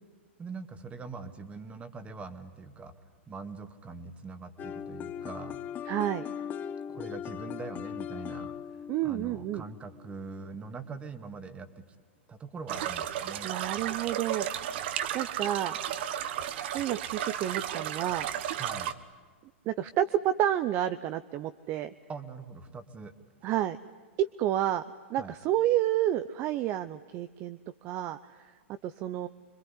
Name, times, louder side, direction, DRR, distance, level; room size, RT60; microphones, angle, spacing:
voice 1, 0.4-2.9 3.3-5.6 6.9-11.8 12.3-13.5 18.6-18.9 22.1-23.1 25.2-25.3, right 4 dB, 20° right, 9 dB, 2.2 m, -43 dB
sound 1, 4.6-10.4, left 8 dB, 25° left, 1.1 m, -39 dB
voice 2, 5.9-6.3 8.9-9.6 13.4-14.8 15.1-15.8 16.7-18.3 19.7-21.9 23.4-23.8 24.2-24.8 25.1-28.5 28.8-29.3, right 12 dB, 35° right, 11 dB, 0.9 m, -30 dB
sound 2, 12.7-18.9, right 10 dB, 60° right, 1.5 m, -34 dB
26.5 x 22.5 x 9.9 m, 1.5 s
hypercardioid pair, 125°, 7 cm